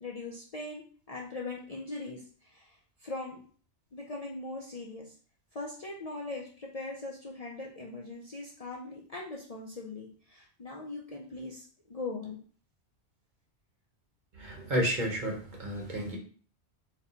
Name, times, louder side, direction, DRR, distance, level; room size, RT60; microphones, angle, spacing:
voice 1, 0.0-3.4 3.9-5.1 5.5-12.4, left 3 dB, 45° left, -2 dB, 0.5 m, -40 dB
voice 2, 14.4-16.2, equal, 45° right, 0 dB, 0.9 m, -31 dB
4.2 x 2.2 x 3.9 m, 0.44 s
omnidirectional pair, 1.2 m